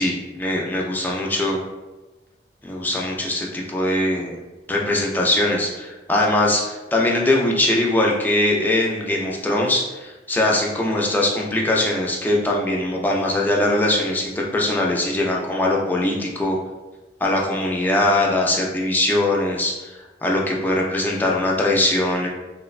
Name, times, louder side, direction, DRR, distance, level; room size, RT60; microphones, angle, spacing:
voice 1, 0.0-1.6 2.6-4.4 4.7-16.6 17.2-22.3, left 1 dB, 10° left, -2 dB, 0.3 m, -21 dB
3.1 x 2.1 x 2.3 m, 1.1 s
head